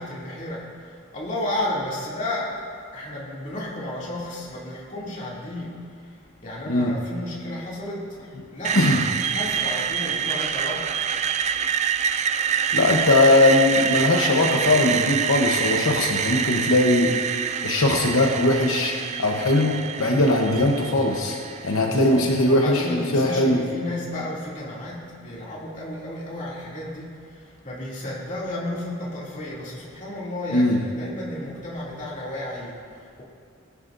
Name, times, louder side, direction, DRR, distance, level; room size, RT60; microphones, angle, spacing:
voice 1, 0.0-2.6 2.9-8.2 8.5-8.8 9.0-11.0 21.8-33.2, left 1 dB, 35° left, -6 dB, 2.6 m, -33 dB
Screech, 8.6-22.6, right 7 dB, 35° right, 0.3 m, -26 dB
voice 2, 8.7-9.0 12.7-17.2 17.6-21.4 21.6-23.6 30.5-30.8, left 2 dB, 80° left, 1 dB, 0.9 m, -20 dB
19.5 x 10.5 x 2.6 m, 2.2 s
head